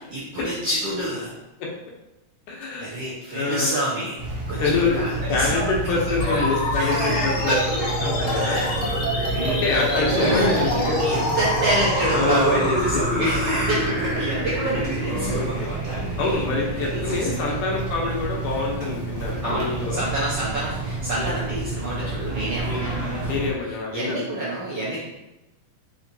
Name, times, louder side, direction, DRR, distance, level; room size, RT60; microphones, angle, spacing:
voice 1, 0.1-1.3 2.8-5.5 5.8-6.5 6.8-8.7 9.3-9.6 9.9-16.0 16.5-17.6 19.4-22.9 23.7-25.0, right 1 dB, 75° right, -8 dB, 1.4 m, -28 dB
voice 2, 2.5-3.0 3.3-3.8 4.6-7.6 8.0-8.6 9.6-11.3 12.1-12.8 15.1-15.7 16.2-20.0 21.2-21.4 22.7-22.8 23.3-24.4, left 4 dB, 80° left, -1 dB, 2.3 m, -26 dB
sound 1, 4.2-23.5, right 2 dB, 40° right, 1.4 m, -29 dB
sound 2, 6.2-17.2, left 1 dB, 65° left, 1.3 m, -27 dB
5.4 x 3.0 x 2.6 m, 0.96 s
omnidirectional pair, 3.7 m